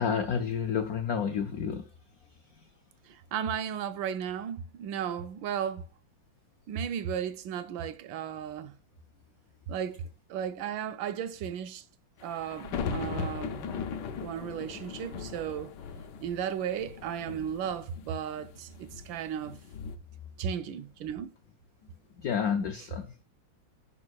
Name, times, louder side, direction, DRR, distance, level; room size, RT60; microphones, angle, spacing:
voice 1, 0.0-1.9 2.3-2.7 14.7-14.8 22.2-23.2, left 7 dB, 85° left, 0.8 m, -30 dB
voice 2, 3.0-5.9 6.7-8.7 9.7-11.8 12.2-15.7 16.2-19.6 20.4-21.3, right 8 dB, 80° right, 1.3 m, -35 dB
sound 1, 12.2-20.0, left 5 dB, 70° left, 1.2 m, -38 dB
10.5 x 3.8 x 2.3 m
omnidirectional pair, 2.2 m